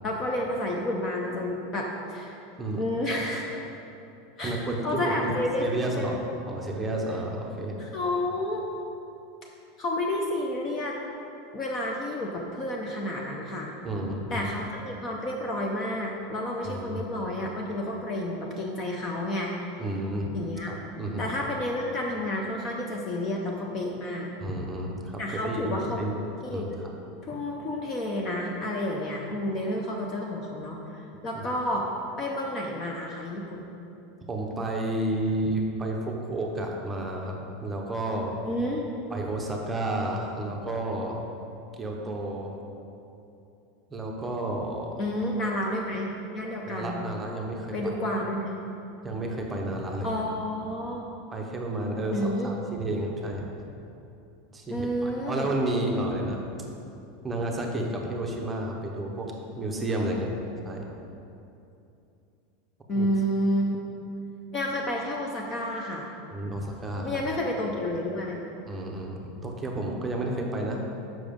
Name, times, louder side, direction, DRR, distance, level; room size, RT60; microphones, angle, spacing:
voice 1, 0.0-2.3 2.8-3.5 4.4-4.6 4.8-6.2 7.8-8.6 9.8-10.9 11.5-13.7 14.3-19.5 20.3-20.7 21.2-24.3 25.2-26.0 26.4-26.8 27.2-31.9 32.2-33.7 38.4-38.9 45.0-47.0 47.7-48.5 50.0-51.1 52.1-52.5 54.7-55.5 62.9-63.8 64.5-66.1 67.0-68.4, left 1 dB, 20° left, -1 dB, 0.6 m, -30 dB
voice 2, 4.4-5.3 5.6-6.2 6.5-7.8 13.8-14.5 16.6-17.0 19.8-20.3 20.6-21.3 24.4-26.7 34.3-38.4 39.1-41.3 41.8-42.6 43.9-45.0 46.7-47.7 49.0-50.1 51.3-53.5 54.5-56.4 57.2-60.3 60.7-60.9 62.9-63.1 66.3-67.2 68.7-70.8, right 1 dB, 10° right, 0 dB, 0.7 m, -31 dB
7.2 x 6.1 x 5.1 m, 2.8 s
supercardioid pair, 180°, 0 cm